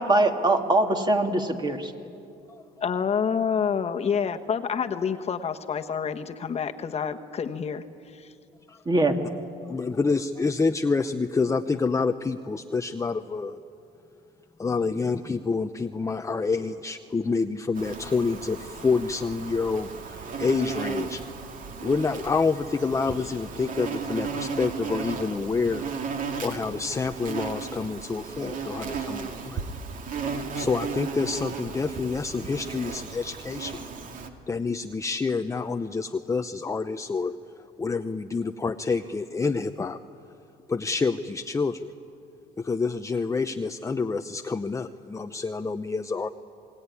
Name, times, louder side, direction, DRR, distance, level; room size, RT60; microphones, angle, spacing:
voice 1, 0.0-1.9 8.9-9.1, right 2 dB, 25° right, 4 dB, 2.4 m, -22 dB
voice 2, 2.8-7.8 8.1-8.3, left 7 dB, 40° left, 6 dB, 1.3 m, -28 dB
voice 3, 9.6-13.6 14.6-21.2 21.8-25.9 26.4-29.7 30.5-33.8 34.5-37.4 37.8-40.0 40.7-41.9 42.6-46.3, left 4 dB, 20° left, 7 dB, 0.7 m, -27 dB
Insect, 17.8-34.3, right 5 dB, 55° right, 2.3 m, -35 dB
28.0 x 20.0 x 9.8 m, 2.5 s
cardioid pair, 110°, 17 cm